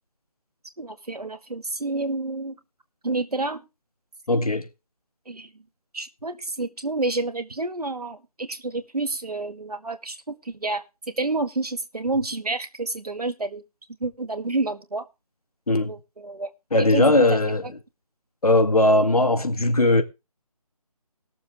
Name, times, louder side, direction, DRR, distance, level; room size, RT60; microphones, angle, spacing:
voice 1, 0.8-2.5 3.0-3.6 5.3-5.5 5.9-10.8 11.2-13.6 14.0-15.1 15.9-16.5 16.8-17.3, right 2 dB, 80° right, 1.9 m, -29 dB
voice 2, 4.3-4.7 15.7-15.9 16.7-17.6 18.4-20.0, left 2 dB, 70° left, 1.9 m, -19 dB
20.0 x 7.0 x 3.6 m
figure-of-eight pair, 160°, 19 cm